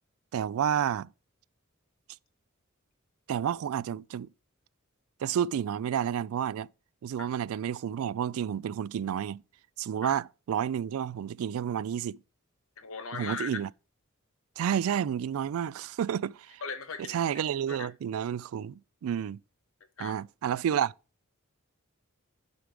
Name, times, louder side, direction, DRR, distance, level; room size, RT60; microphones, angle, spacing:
voice 1, 0.3-1.1 3.3-4.3 5.2-6.7 7.0-9.4 9.8-12.2 13.1-13.7 14.6-16.6 17.1-19.4 20.0-20.9, right 9 dB, 85° right, 0.3 m, -30 dB
voice 2, 12.8-13.5 16.6-17.2 17.7-17.9 20.0-20.2, left 5 dB, 80° left, 1.2 m, -38 dB
6.8 x 5.2 x 4.6 m
head